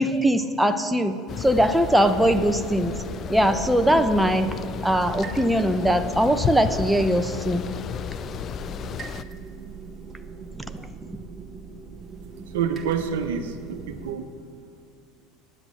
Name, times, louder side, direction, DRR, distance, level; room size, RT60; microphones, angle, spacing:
voice 1, 0.0-3.0 3.3-4.6 4.8-7.6 10.5-11.1, equal, 5° right, 8 dB, 0.8 m, -21 dB
sound 1, 1.3-9.2, left 8 dB, 40° left, 0.4 m, -33 dB
sound 2, 1.9-14.1, right 5 dB, 25° right, 1.5 m, -41 dB
voice 2, 12.5-14.2, right 7 dB, 75° right, 7 dB, 0.9 m, -27 dB
9.7 x 8.1 x 8.5 m, 2.3 s
hypercardioid pair, 75°, 0 cm